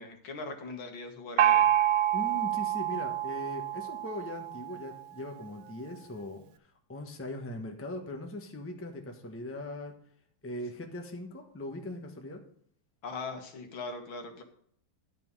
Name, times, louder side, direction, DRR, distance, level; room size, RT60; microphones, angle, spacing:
voice 1, 0.0-1.7 13.0-14.4, left 3 dB, 75° left, 4 dB, 2.2 m, -40 dB
Gong, 1.4-4.9, right 11 dB, 85° right, 1.5 m, -27 dB
voice 2, 2.1-10.0 10.4-12.4, left 1 dB, 10° left, 3 dB, 0.9 m, -40 dB
12.0 x 5.6 x 5.4 m, 0.63 s
omnidirectional pair, 2.2 m